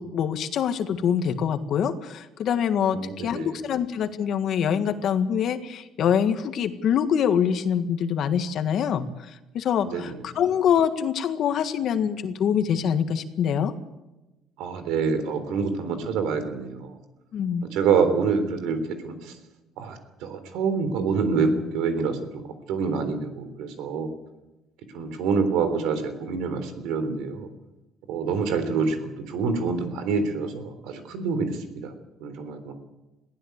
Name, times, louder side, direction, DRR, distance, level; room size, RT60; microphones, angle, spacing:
voice 1, 0.0-9.1 9.5-13.7 17.3-17.7, left 8 dB, 55° left, 9 dB, 1.7 m, -24 dB
voice 2, 2.9-3.6 9.9-10.0 14.6-16.9 17.7-19.3 19.8-22.4 22.7-24.1 24.9-27.5 28.1-31.9 32.2-32.7, right 5 dB, 85° right, 9 dB, 3.6 m, -26 dB
22.0 x 15.5 x 8.2 m, 1.0 s
cardioid pair, 140°, 0 cm